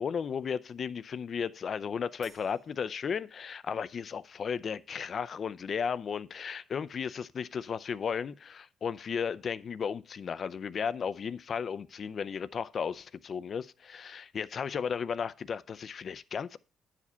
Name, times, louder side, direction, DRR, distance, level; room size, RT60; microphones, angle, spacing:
voice 1, 0.0-16.6, left 6 dB, 50° left, 0.4 m, -34 dB
Crash cymbal, 2.2-3.9, right 5 dB, 70° right, 1.8 m, -61 dB
9.6 x 5.0 x 5.5 m
cardioid pair, 90°, 0 cm